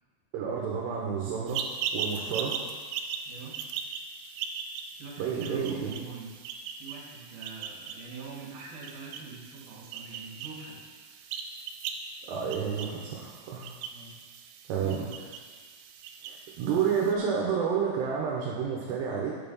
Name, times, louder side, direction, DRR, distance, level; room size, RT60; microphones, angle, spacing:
voice 1, 0.3-1.7 1.9-2.6 5.2-5.8 12.2-13.7 14.7-14.9 16.3-19.4, right 7 dB, 70° right, -3 dB, 2.9 m, -30 dB
sound 1, 1.5-17.2, right 6 dB, 85° right, 3.1 m, -39 dB
voice 2, 2.2-2.5 3.3-3.5 5.0-6.3 6.8-10.8 13.9-14.1 14.8-15.3, right 4 dB, 55° right, -3 dB, 3.5 m, -43 dB
9.4 x 8.0 x 5.4 m, 1.6 s
omnidirectional pair, 5.5 m